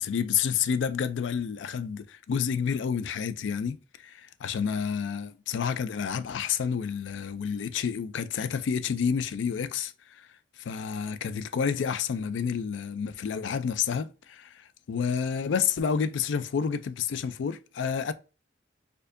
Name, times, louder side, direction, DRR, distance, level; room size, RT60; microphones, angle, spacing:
voice 1, 0.0-3.8 4.0-10.3 10.6-18.1, left 7 dB, 85° left, 0.4 m, -29 dB
4.3 x 2.7 x 2.5 m
head